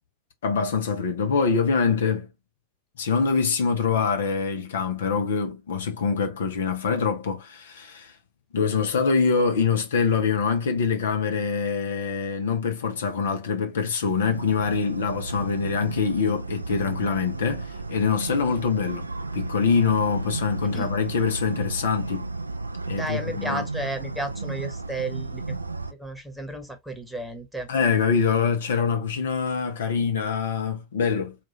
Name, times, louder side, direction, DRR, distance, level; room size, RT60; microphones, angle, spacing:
voice 1, 0.4-2.3 3.0-8.1 8.5-19.1 19.3-22.3 22.9-23.6 27.7-31.3, left 5 dB, 70° left, 0.9 m, -24 dB
sound 1, 14.3-25.9, right 3 dB, 90° right, 0.4 m, -33 dB
voice 2, 23.0-25.6 26.0-27.7, right 2 dB, ahead, 1.2 m, -33 dB
4.6 x 2.5 x 2.8 m
figure-of-eight pair, 90°, 0 cm